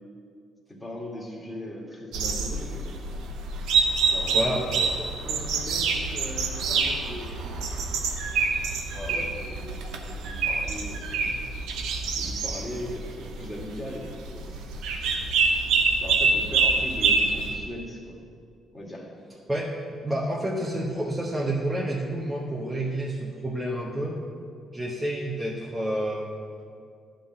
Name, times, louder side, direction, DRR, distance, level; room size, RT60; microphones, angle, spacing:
voice 1, 0.7-3.0 4.0-7.6 8.9-11.4 12.1-14.5 16.0-18.2 18.7-19.1, left 1 dB, 10° left, -3 dB, 2.2 m, -39 dB
sound 1, 2.1-17.5, right 4 dB, 90° right, 0.8 m, -26 dB
voice 2, 4.3-4.6 19.5-24.2 24.7-26.3, right 1 dB, 10° right, -4 dB, 1.1 m, -29 dB
11.0 x 3.9 x 7.4 m, 2.3 s
cardioid pair, 90°, 0 cm